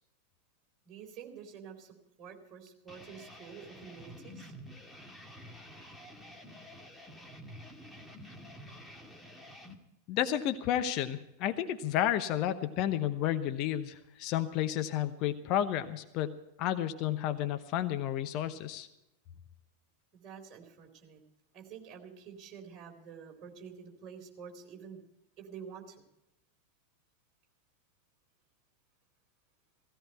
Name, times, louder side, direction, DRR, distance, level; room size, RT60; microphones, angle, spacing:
voice 1, 0.8-4.5 20.1-21.2 21.5-25.0 25.4-26.0, right 7 dB, 30° right, 1 dB, 3.9 m, -48 dB
sound 1, 2.9-9.8, equal, 5° left, 2.0 m, -50 dB
voice 2, 10.1-18.9, left 11 dB, 40° left, 9 dB, 0.9 m, -31 dB
17.0 x 16.5 x 4.4 m, 0.85 s
figure-of-eight pair, 90°, 0 cm